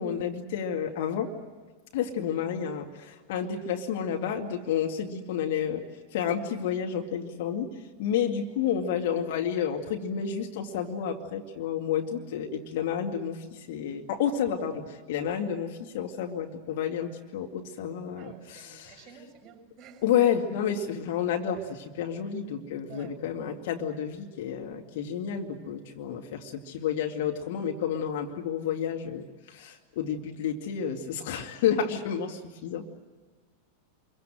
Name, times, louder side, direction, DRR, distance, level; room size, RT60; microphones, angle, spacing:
voice 1, 0.0-1.3 1.9-5.8 6.1-7.7 8.0-19.0 20.0-32.9, left 8 dB, 50° left, 3 dB, 2.2 m, -30 dB
voice 2, 18.2-20.1 22.9-23.2, right 7 dB, 25° right, 4 dB, 6.3 m, -50 dB
27.0 x 23.5 x 7.8 m, 1.4 s
figure-of-eight pair, 90°, 0 cm